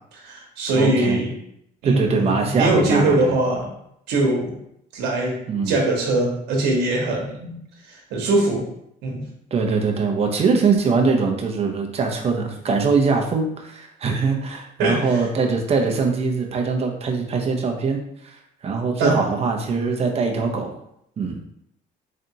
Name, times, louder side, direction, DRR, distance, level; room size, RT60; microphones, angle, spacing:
voice 1, 0.1-1.3 1.8-3.7 4.1-4.5 4.9-5.4 5.6-7.5 7.9-8.6 9.0-9.2 14.8-15.2 19.0-19.2, right 2 dB, 90° right, -1 dB, 1.1 m, -21 dB
voice 2, 0.7-1.2 1.8-3.3 5.5-5.8 9.5-20.7 21.2-21.4, right 4 dB, 35° right, 3 dB, 0.7 m, -22 dB
3.9 x 3.3 x 2.8 m, 0.75 s
cardioid pair, 110°, 17 cm